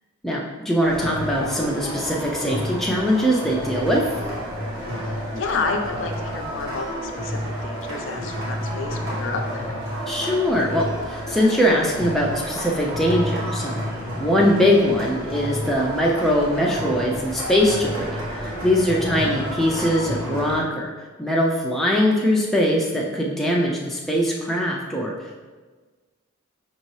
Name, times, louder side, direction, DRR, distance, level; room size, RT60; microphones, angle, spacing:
voice 1, 0.2-4.0 10.1-13.8 14.2-20.9 21.2-25.1, equal, ahead, -3 dB, 0.3 m, -21 dB
sound 1, 0.8-20.6, equal, 70° right, 1.1 m, -30 dB
voice 2, 5.0-9.8 19.2-19.5, left 4 dB, 65° left, 4 dB, 0.4 m, -30 dB
5.3 x 2.7 x 3.0 m, 1.4 s
head